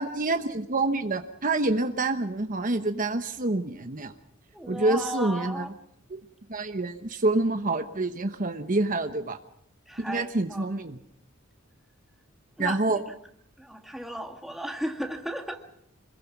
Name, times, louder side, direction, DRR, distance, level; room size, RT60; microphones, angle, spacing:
voice 1, 0.0-4.1 4.7-5.6 6.1-6.2 6.5-9.4 10.1-11.0 12.6-13.0, right 2 dB, 40° right, 1.1 m, -27 dB
voice 2, 4.5-5.7 9.9-10.7 12.6-13.0 13.6-15.6, equal, ahead, 2.0 m, -35 dB
27.0 x 21.5 x 6.1 m
head